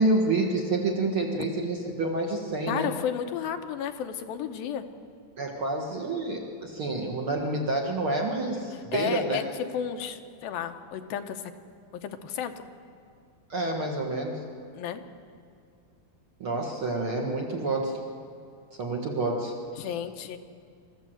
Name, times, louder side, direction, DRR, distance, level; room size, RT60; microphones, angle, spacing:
voice 1, 0.0-2.9 5.4-9.4 13.5-14.4 16.4-18.0 18.8-19.9, right 2 dB, 50° right, 0 dB, 1.9 m, -28 dB
voice 2, 2.7-4.8 8.7-9.4 9.7-11.4 12.0-12.5 14.7-15.0 19.8-20.4, left 9 dB, 85° left, 7 dB, 2.8 m, -32 dB
25.0 x 14.0 x 7.8 m, 2.3 s
omnidirectional pair, 4.1 m